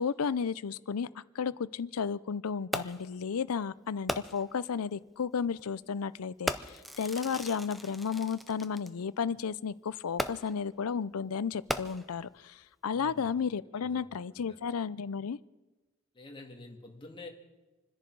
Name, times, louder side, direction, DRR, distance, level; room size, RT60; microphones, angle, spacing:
voice 1, 0.0-15.4, left 6 dB, 80° left, 18 dB, 0.5 m, -33 dB
Fireworks, 2.7-3.2 4.1-4.6 5.5-5.6 6.5-8.9 10.2-10.7 11.5-12.3 13.0-13.1, equal, ahead, 0.6 m, -37 dB
voice 2, 12.9-13.3 13.7-14.6 16.1-17.3, left 2 dB, 25° left, 1 dB, 2.0 m, -49 dB
27.5 x 10.5 x 4.7 m, 1.1 s
head